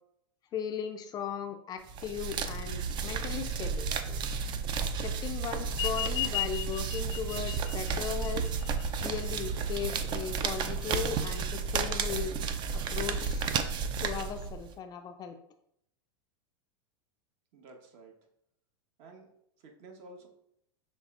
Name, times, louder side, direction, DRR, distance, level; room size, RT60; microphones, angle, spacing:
voice 1, 0.5-4.2 4.8-8.4 9.0-12.4 12.7-13.5 14.0-15.4, left 8 dB, 30° left, 7 dB, 0.4 m, -37 dB
sound 1, 1.9-14.7, right 5 dB, 35° right, 0.4 m, -32 dB
sound 2, 5.7-10.7, left 15 dB, 85° left, 0.6 m, -37 dB
voice 2, 17.5-18.1 19.0-19.3 19.6-20.3, right 2 dB, 50° right, 3 dB, 1.1 m, -52 dB
6.5 x 3.2 x 2.4 m, 0.74 s
hypercardioid pair, 120°, 14 cm